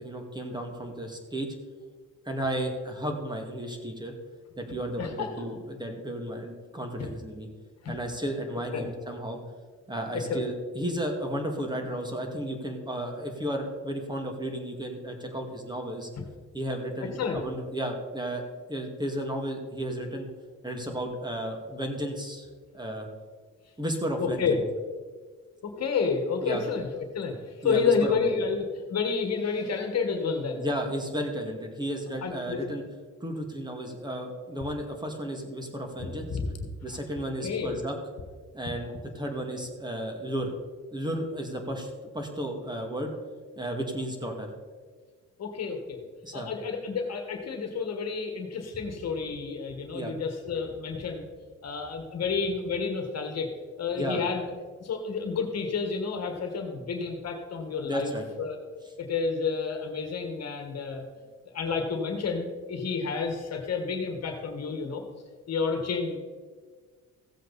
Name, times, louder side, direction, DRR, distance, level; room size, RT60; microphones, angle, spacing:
voice 1, 0.0-1.6 2.3-4.1 4.6-7.5 7.9-9.4 9.9-16.1 16.5-18.4 18.7-20.3 20.6-22.5 22.7-23.1 23.8-24.6 26.4-26.6 27.6-28.2 30.6-32.8 33.2-36.3 36.8-38.0 38.5-40.5 40.9-43.1 43.6-44.5 46.2-46.5 49.9-50.1 54.0-54.2 57.8-58.3, right 1 dB, 15° right, 3 dB, 2.1 m, -33 dB
voice 2, 5.0-5.4 7.0-7.1 7.8-8.0 8.7-8.9 10.1-10.4 17.0-17.4 24.2-24.6 25.6-26.9 27.1-30.6 32.2-32.6 36.0-36.4 37.4-37.8 45.4-46.0 46.3-51.3 51.6-53.5 53.8-54.5 54.8-58.1 58.4-58.6 59.0-61.0 61.5-65.0 65.5-66.2, left 5 dB, 55° left, 5 dB, 1.6 m, -30 dB
15.5 x 7.7 x 4.2 m, 1.5 s
cardioid pair, 90°, 30 cm